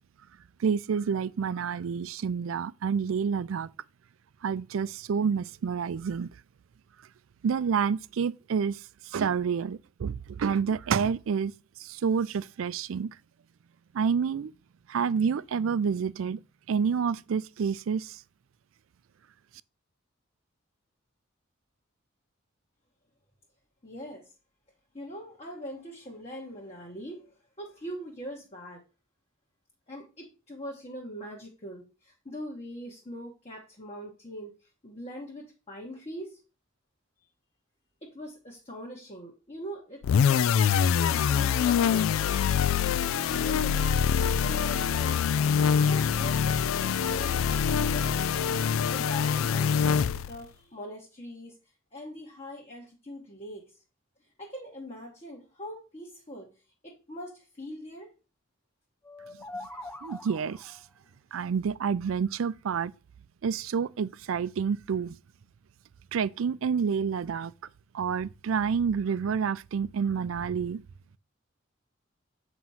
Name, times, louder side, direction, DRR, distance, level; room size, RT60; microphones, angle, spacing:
voice 1, 0.6-3.7 4.4-6.3 7.4-8.8 9.1-11.5 11.8-13.1 13.9-14.5 14.9-16.4 16.7-18.1 60.0-60.8 61.3-62.9 63.4-65.1 66.1-67.5 67.9-70.8, right 6 dB, 80° right, 0.4 m, -28 dB
voice 2, 23.8-24.2 24.9-27.3 27.6-28.8 29.9-34.6 34.8-36.4 38.0-40.4 40.9-42.4 43.1-43.9 44.4-45.2 45.8-48.2 48.9-51.6 51.9-53.7 54.4-56.5 56.8-58.1 61.3-61.4, equal, 30° left, 1.2 m, -42 dB
sound 1, 40.0-50.4, left 7 dB, 85° left, 0.3 m, -25 dB
sound 2, 59.0-60.9, left 1 dB, 10° left, 0.5 m, -43 dB
7.7 x 3.0 x 5.5 m
head